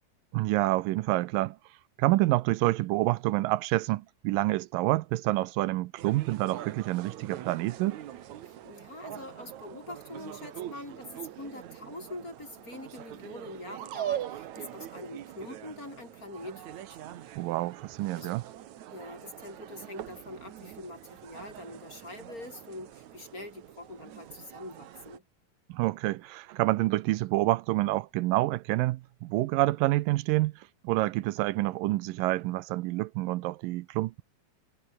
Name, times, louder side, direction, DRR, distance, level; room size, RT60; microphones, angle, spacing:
voice 1, 0.3-1.6 2.0-8.0 17.4-18.4 25.7-34.2, right 18 dB, 85° right, 2.4 m, -28 dB
sound 1, 6.0-25.2, right 12 dB, 65° right, 2.4 m, -43 dB
voice 2, 8.4-17.0 18.2-18.4 18.9-25.2, left 2 dB, 25° left, 5.6 m, -44 dB
omnidirectional pair, 3.9 m